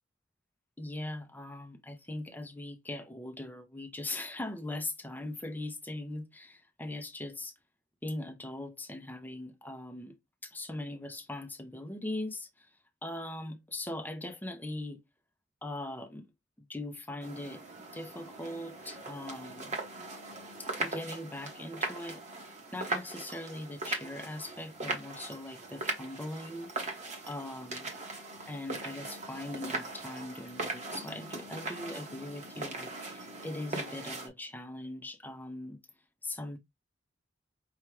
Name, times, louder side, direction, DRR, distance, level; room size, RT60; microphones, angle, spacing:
voice 1, 0.8-7.5 8.0-10.2 10.4-12.7 13.0-15.0 15.6-16.3 16.6-17.6 17.9-19.8 20.6-22.2 22.7-26.9 27.3-27.9 28.5-35.8 36.2-36.6, left 1 dB, 10° left, 0.7 m, -40 dB
sound 1, 17.2-34.3, right 2 dB, 35° right, 1.2 m, -40 dB
5.6 x 2.4 x 3.2 m
head